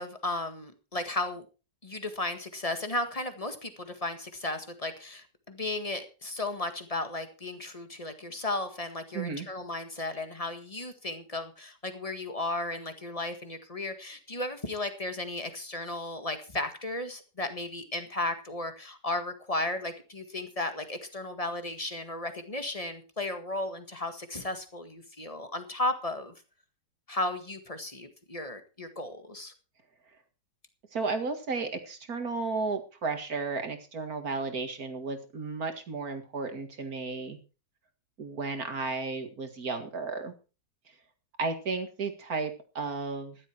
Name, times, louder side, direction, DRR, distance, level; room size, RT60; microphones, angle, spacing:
voice 1, 0.0-1.4 1.8-26.3 27.1-29.5, left 2 dB, 20° left, 8 dB, 1.8 m, -35 dB
voice 2, 9.1-9.5 30.9-37.4 38.2-40.3 41.4-43.4, right 4 dB, 55° right, 7 dB, 2.4 m, -33 dB
14.0 x 12.0 x 4.5 m, 0.34 s
omnidirectional pair, 1.9 m